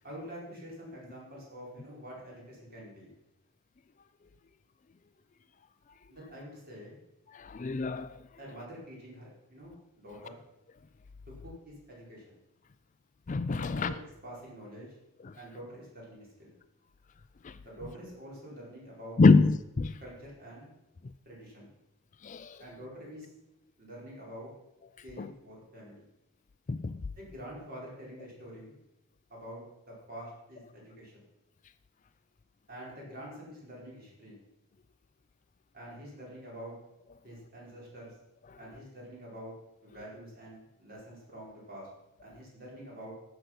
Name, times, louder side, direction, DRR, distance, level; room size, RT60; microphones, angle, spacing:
voice 1, 0.0-3.1 6.1-7.0 8.4-9.7 10.0-10.4 11.4-12.4 13.6-14.0 14.2-15.0 15.4-16.5 17.6-19.4 20.0-20.7 21.2-21.7 22.6-23.3 23.8-24.5 25.0-26.1 27.2-28.8 29.3-31.2 32.7-34.4 35.7-36.8 37.2-38.1 38.6-39.5 39.8-41.9 42.2-43.1, equal, 45° right, -4 dB, 5.0 m, -46 dB
voice 2, 7.3-8.1 13.3-13.9 17.4-17.5 19.2-20.0 22.2-22.6 25.2-25.3 26.7-27.0, left 4 dB, 35° left, 13 dB, 0.4 m, -25 dB
12.0 x 8.0 x 6.0 m, 0.90 s
head